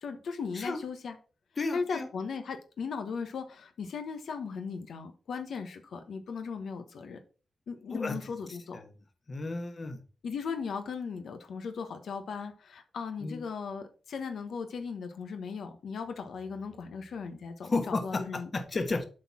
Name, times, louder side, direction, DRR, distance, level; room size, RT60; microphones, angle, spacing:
voice 1, 0.0-1.2 1.7-7.2 7.7-8.8 10.2-18.5, left 5 dB, 80° left, 1.0 m, -37 dB
voice 2, 1.6-2.1 7.9-8.2 9.3-10.0 13.2-13.4 17.6-18.2 18.5-19.0, left 3 dB, 40° left, 1.3 m, -32 dB
7.8 x 4.3 x 5.9 m
cardioid pair, 95°, 0 cm